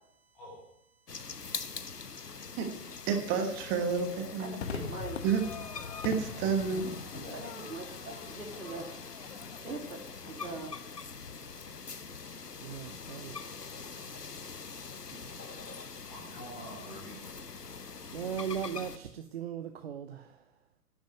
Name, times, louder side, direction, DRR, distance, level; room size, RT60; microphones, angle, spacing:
voice 1, 1.0-1.9 12.6-13.3 15.1-15.6 18.1-20.4, right 8 dB, 40° right, 7 dB, 0.9 m, -40 dB
sound 1, 1.1-19.0, left 5 dB, 85° left, 1.0 m, -44 dB
voice 2, 3.1-4.6 5.2-5.4 6.0-6.8, right 6 dB, 20° right, 5 dB, 1.4 m, -30 dB
voice 3, 4.4-5.2 7.3-8.8 9.6-10.0 10.2-10.7, right 3 dB, 65° right, 1 dB, 4.0 m, -41 dB
Crowd / Fireworks, 4.6-11.1, left 5 dB, 45° left, 1.1 m, -43 dB
voice 4, 6.7-7.4 8.5-9.0 16.0-17.2, equal, 5° left, -5 dB, 0.5 m, -46 dB
10.5 x 7.3 x 9.1 m, 0.80 s
figure-of-eight pair, 120°, 47 cm